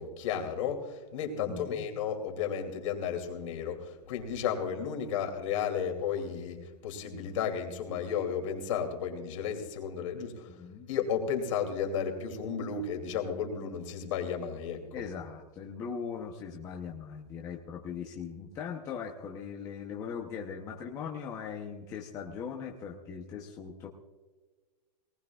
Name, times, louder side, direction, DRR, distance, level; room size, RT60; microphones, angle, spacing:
voice 1, 0.0-10.5 10.9-14.8, left 7 dB, 50° left, 3 dB, 2.7 m, -33 dB
voice 2, 1.4-1.8 10.5-10.9 14.9-23.9, left 6 dB, 15° left, 0 dB, 0.7 m, -40 dB
19.0 x 19.0 x 2.3 m, 1.3 s
supercardioid pair, 175°, 20 cm